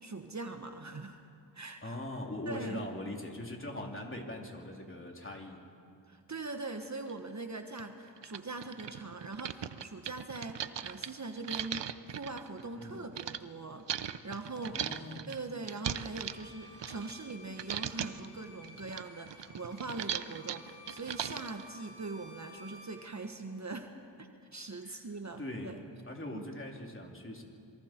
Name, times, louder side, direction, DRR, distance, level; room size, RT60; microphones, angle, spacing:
voice 1, 0.0-1.2 1.5-2.0 2.5-2.8 6.1-14.8 15.3-23.9 24.2-25.8 26.3-26.5, right 3 dB, 35° right, 5 dB, 1.3 m, -42 dB
voice 2, 1.8-5.6 12.8-13.0 14.7-15.2 24.8-25.0 25.4-25.8 26.1-27.4, left 1 dB, 25° left, 1 dB, 3.2 m, -41 dB
sound 1, 7.1-7.2 7.8-7.9 8.2-13.4 13.9-17.3 17.6-18.3 18.6-21.6, right 9 dB, 65° right, 0.8 m, -39 dB
Bowed string instrument, 16.2-23.0, left 1 dB, 85° left, 3.2 m, -54 dB
27.0 x 23.0 x 4.5 m, 2.5 s
cardioid pair, 65°, 46 cm